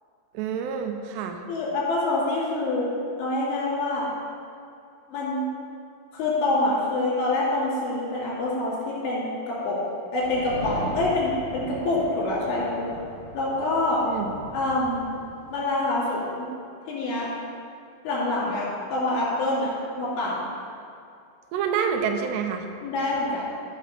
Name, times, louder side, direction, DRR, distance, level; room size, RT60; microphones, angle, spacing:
voice 1, 0.3-1.4 14.0-14.3 21.5-22.7, right 7 dB, 80° right, 5 dB, 2.7 m, -27 dB
voice 2, 1.5-2.9 3.2-4.1 5.1-5.5 6.1-9.8 10.1-12.9 13.3-14.0 14.5-15.1 15.5-16.5 16.9-17.3 18.0-20.5 22.8-23.5, left 2 dB, 75° left, -6 dB, 4.8 m, -26 dB
sound 1, 10.2-15.7, right 1 dB, 45° right, 2.2 m, -38 dB
13.5 x 4.7 x 5.7 m, 2.5 s
omnidirectional pair, 5.2 m